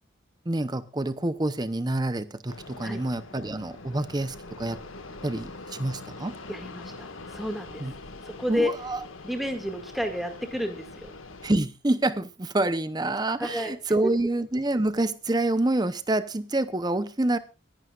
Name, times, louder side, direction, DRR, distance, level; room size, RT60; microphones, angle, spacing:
voice 1, 0.5-4.8 5.2-6.3 7.8-7.9 8.5-9.0 11.4-17.4, right 2 dB, 20° right, 0.7 m, -27 dB
Fixed-wing aircraft airplane, 2.5-11.6, left 3 dB, 85° left, 1.7 m, -43 dB
voice 2, 6.5-7.9 8.2-8.7 9.2-11.1 13.4-13.8, left 1 dB, ahead, 2.0 m, -31 dB
23.5 x 11.0 x 2.4 m
head